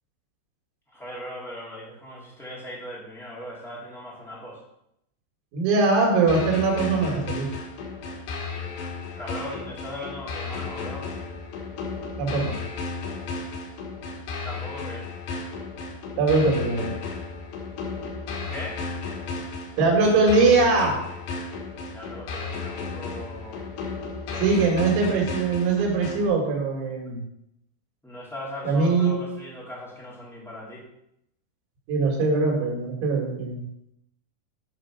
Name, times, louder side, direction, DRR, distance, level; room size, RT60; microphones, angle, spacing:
voice 1, 0.9-4.6 9.2-11.1 14.4-15.0 18.5-18.8 21.9-23.7 24.3-24.7 28.0-30.9, left 1 dB, ahead, -6 dB, 2.6 m, -38 dB
voice 2, 5.5-7.5 12.2-12.6 16.2-16.9 19.8-21.0 24.4-27.2 28.6-29.1 31.9-33.6, right 3 dB, 85° right, -1 dB, 4.8 m, -21 dB
sound 1, 6.3-26.3, left 4 dB, 70° left, 3.8 m, -34 dB
11.5 x 4.7 x 6.1 m, 0.79 s
omnidirectional pair, 5.2 m